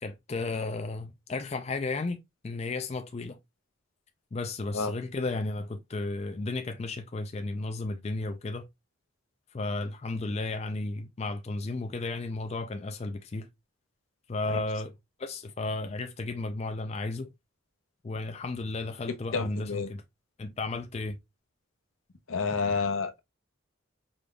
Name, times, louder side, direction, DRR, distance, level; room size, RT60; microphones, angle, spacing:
voice 1, 0.0-3.4 4.3-8.7 9.5-13.5 14.3-14.9 15.2-17.3 18.0-20.0 20.4-21.2, left 3 dB, 30° left, 0.4 m, -34 dB
voice 2, 19.3-19.9 22.3-23.2, left 4 dB, 80° left, 0.8 m, -29 dB
5.0 x 3.7 x 2.3 m
head